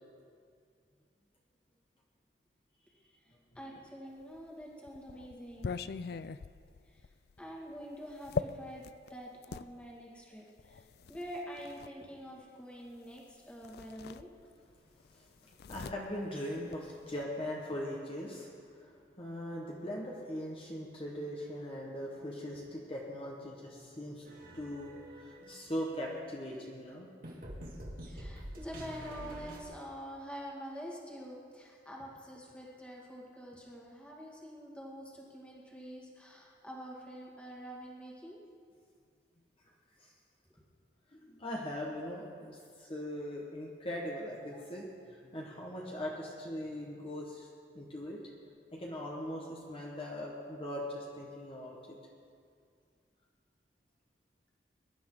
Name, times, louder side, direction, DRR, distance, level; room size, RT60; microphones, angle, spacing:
voice 1, 3.6-5.8 6.9-7.0 7.4-10.8 11.1-14.3 28.0-38.4, equal, 5° left, -4 dB, 2.2 m, -46 dB
sound 1, 4.4-9.7 10.6-11.9 13.2-13.3 13.6-14.7 15.0-17.2, left 5 dB, 60° left, 0.4 m, -41 dB
voice 2, 15.7-27.1 40.0-40.1 41.1-47.5 47.7-48.2 48.7-52.0, equal, 30° left, -3 dB, 1.5 m, -40 dB
sound 2, 24.2-26.1 27.2-29.6, equal, 55° right, 2.3 m, -47 dB
22.5 x 11.5 x 3.9 m, 2.2 s
head